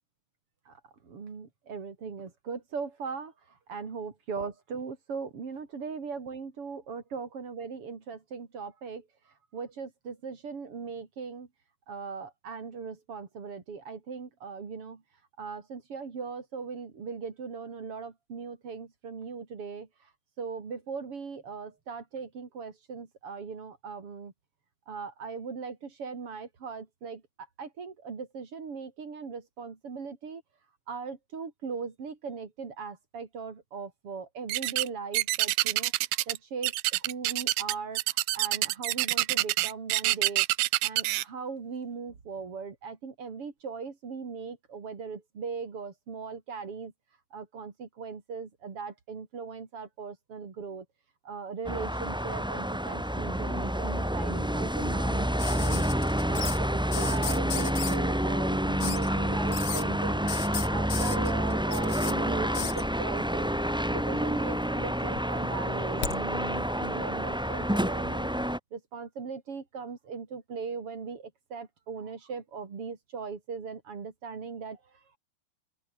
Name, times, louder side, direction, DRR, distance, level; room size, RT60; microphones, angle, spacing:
voice 1, 1.0-11.5 11.9-15.0 15.4-20.1 20.4-24.3 24.9-27.2 27.6-30.4 30.9-35.9 36.3-40.5 40.8-46.9 47.3-50.9 51.2-55.8 56.2-60.3 60.7-63.5 63.9-68.3 68.7-75.2, right 5 dB, 40° right, 3.8 m, -39 dB
sound 1, 34.5-34.9 35.1-36.4 36.6-41.2, right 19 dB, 85° right, 2.4 m, -26 dB
sound 2, 51.6-68.6, equal, 5° right, 0.3 m, -28 dB
sound 3, 55.4-56.6 56.9-58.0 58.8-59.1 59.5-59.8 60.3-62.1 62.5-62.8 63.9-64.5 64.8-66.2 67.5-67.6, left 8 dB, 60° left, 1.1 m, -36 dB
open air
omnidirectional pair, 4.3 m